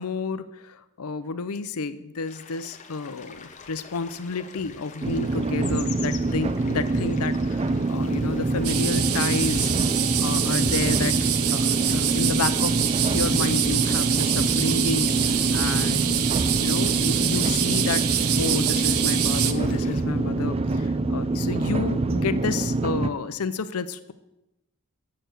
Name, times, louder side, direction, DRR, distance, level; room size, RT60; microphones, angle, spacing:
voice 1, 0.0-9.7 10.2-11.1 11.4-12.8 13.1-16.2 16.6-18.0 18.4-24.1, left 4 dB, 85° left, 13 dB, 0.6 m, -30 dB
sound 1, 2.3-20.0, left 5 dB, 35° left, 0.9 m, -44 dB
sound 2, 5.0-23.1, right 2 dB, 25° right, 0.4 m, -25 dB
sound 3, 8.6-19.5, right 11 dB, 80° right, 0.7 m, -25 dB
7.6 x 6.7 x 8.1 m, 0.91 s
head